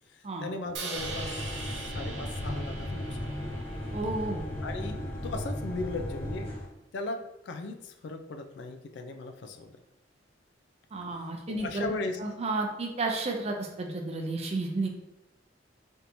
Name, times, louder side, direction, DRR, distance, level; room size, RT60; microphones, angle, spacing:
voice 1, 0.1-3.6 4.6-6.5 6.9-9.8 11.5-12.2, left 3 dB, 70° left, 6 dB, 0.4 m, -38 dB
Crash cymbal, 0.7-4.9, right 3 dB, 75° right, 0.7 m, -41 dB
sound 1, 0.9-6.7, left 1 dB, 35° left, 1.2 m, -36 dB
voice 2, 3.9-4.4 10.9-11.9 12.2-14.9, right 2 dB, 35° right, 2 dB, 0.5 m, -32 dB
3.5 x 2.8 x 2.6 m, 0.91 s
head